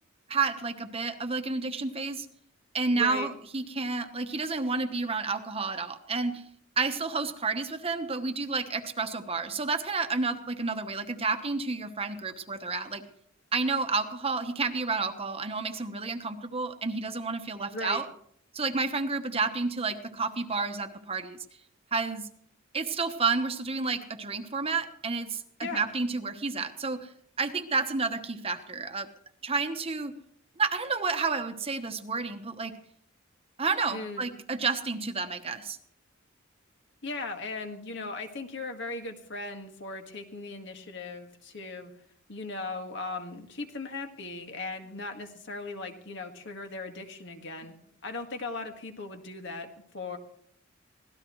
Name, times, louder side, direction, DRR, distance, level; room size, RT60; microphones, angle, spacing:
voice 1, 0.3-2.3 2.7-6.4 6.8-13.0 13.5-18.1 18.5-21.4 21.9-22.3 22.7-27.1 27.4-29.1 29.4-30.1 30.6-32.7 33.6-35.8, right 4 dB, 30° right, 7 dB, 1.1 m, -30 dB
voice 2, 2.9-3.3 17.7-18.0 25.6-25.8 33.9-34.3 37.0-41.9 42.3-47.7 48.0-50.2, left 3 dB, 60° left, 5 dB, 1.8 m, -38 dB
24.0 x 17.5 x 3.1 m, 0.66 s
head